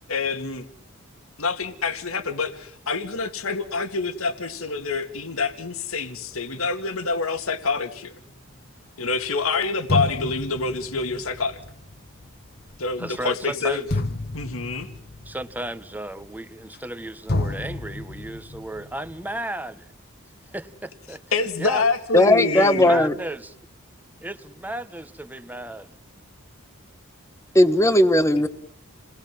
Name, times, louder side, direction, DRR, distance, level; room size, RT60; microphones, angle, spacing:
voice 1, 0.1-0.7 1.4-8.1 9.0-11.6 12.8-13.8 14.3-14.9 21.3-23.0, left 4 dB, 75° left, 8 dB, 2.1 m, -26 dB
sound 1, 9.3-9.4 9.9-17.0 17.3-19.3, left 2 dB, 50° left, 1.3 m, -31 dB
voice 2, 13.0-13.8 15.3-19.9 20.5-21.2 21.6-21.8 22.5-23.5 24.2-25.9, right 1 dB, 10° right, 11 dB, 1.3 m, -34 dB
voice 3, 22.1-23.1 27.5-28.5, left 1 dB, 15° left, 10 dB, 1.4 m, -17 dB
29.0 x 20.0 x 7.5 m, 0.63 s
head